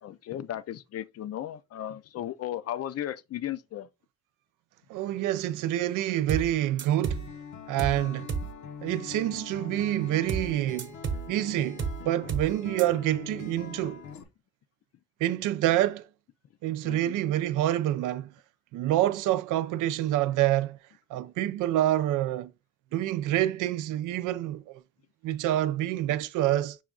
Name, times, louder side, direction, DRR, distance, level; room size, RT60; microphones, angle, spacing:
voice 1, 0.0-3.9 16.8-17.2, left 12 dB, 55° left, 0.5 m, -35 dB
voice 2, 4.9-7.2 7.7-8.3 8.8-10.9 11.3-14.0 15.2-16.1 16.6-18.3 18.7-20.8 21.1-22.5 22.9-24.8 25.2-26.8, right 13 dB, 90° right, 0.5 m, -27 dB
sound 1, 6.3-6.5 6.8-7.3 7.8-8.0 8.3-8.5 10.3-10.5 10.8-11.3 11.8-12.0 12.3-12.5 12.8-12.9, right 6 dB, 40° right, 0.9 m, -31 dB
Acoustic guitar, 7.1-14.2, left 6 dB, 75° left, 0.9 m, -43 dB
6.2 x 2.3 x 3.7 m
cardioid pair, 90°, 30 cm